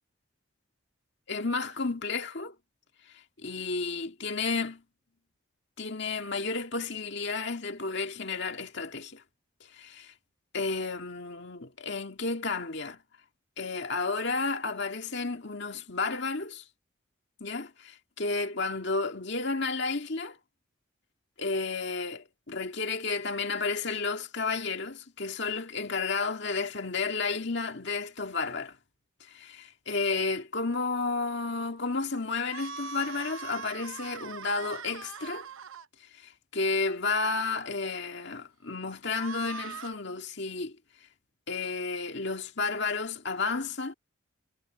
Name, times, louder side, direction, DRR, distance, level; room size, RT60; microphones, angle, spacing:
voice 1, 1.3-2.6 3.1-4.8 5.8-9.2 9.7-10.1 10.5-13.0 13.6-16.6 17.4-20.4 21.4-28.8 29.2-35.5 36.0-40.8 41.5-43.9, left 4 dB, 55° left, 2.0 m, -32 dB
sound 1, 32.4-35.9 39.1-39.9, right 6 dB, 75° right, 0.8 m, -41 dB
head